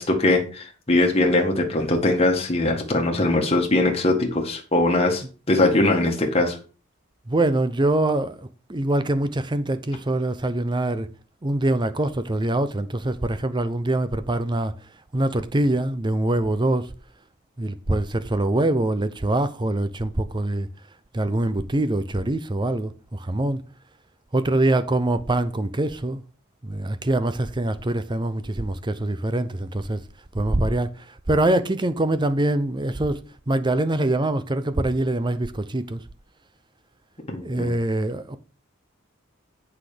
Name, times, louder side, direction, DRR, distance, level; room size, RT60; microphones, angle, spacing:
voice 1, 0.0-6.6 37.3-37.7, left 2 dB, 30° left, 1.8 m, -21 dB
voice 2, 7.3-11.1 11.4-16.9 17.6-20.7 21.1-23.6 24.3-26.2 26.6-30.0 30.3-36.0 37.4-38.4, right 1 dB, 25° right, 0.6 m, -24 dB
8.1 x 6.1 x 5.1 m
head